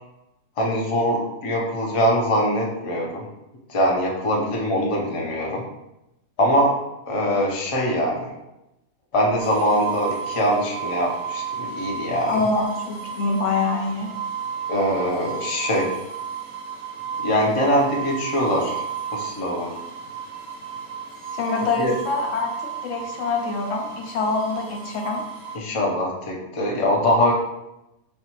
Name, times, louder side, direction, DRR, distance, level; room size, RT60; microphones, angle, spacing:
voice 1, 0.6-3.2 3.7-5.6 6.4-6.7 7.1-8.3 9.1-12.7 14.7-16.0 17.2-18.8 19.1-19.7 21.8-21.9 25.5-27.3, equal, 50° left, -2 dB, 0.4 m, -22 dB
sound 1, 9.4-25.6, right 7 dB, 50° right, 0.6 m, -33 dB
voice 2, 12.3-14.1 21.3-25.3, left 4 dB, 70° left, 2 dB, 0.9 m, -25 dB
4.2 x 2.3 x 2.9 m, 0.91 s
omnidirectional pair, 1.5 m